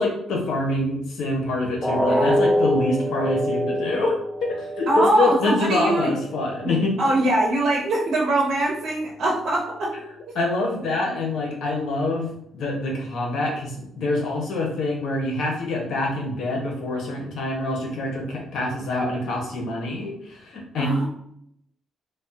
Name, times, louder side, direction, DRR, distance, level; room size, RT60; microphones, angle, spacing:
voice 1, 0.0-4.1 4.4-6.9 10.3-21.0, left 2 dB, 75° left, 0 dB, 0.9 m, -25 dB
sound 1, 1.8-7.8 8.2-8.4 8.8-8.9, equal, 5° right, 0.7 m, -26 dB
voice 2, 4.9-6.1 6.6-9.9 20.8-21.1, right 1 dB, 70° right, -3 dB, 0.7 m, -22 dB
3.3 x 2.2 x 2.8 m, 0.72 s
cardioid pair, 90°, 0 cm